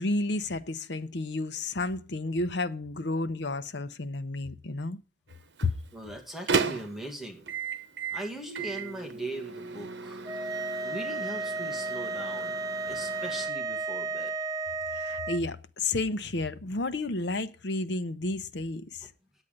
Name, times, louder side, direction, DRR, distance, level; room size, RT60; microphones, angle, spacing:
voice 1, 0.0-5.0 5.6-5.7 14.9-19.1, left 2 dB, 75° left, 0.9 m, -31 dB
Microwave oven, 5.3-13.5, right 5 dB, 85° right, 1.1 m, -36 dB
voice 2, 5.9-7.5 8.1-10.2 10.8-12.6 12.9-14.3, right 1 dB, ahead, 2.1 m, -39 dB
sound 1, 10.3-15.4, right 3 dB, 20° right, 0.6 m, -33 dB
9.9 x 8.3 x 5.3 m
head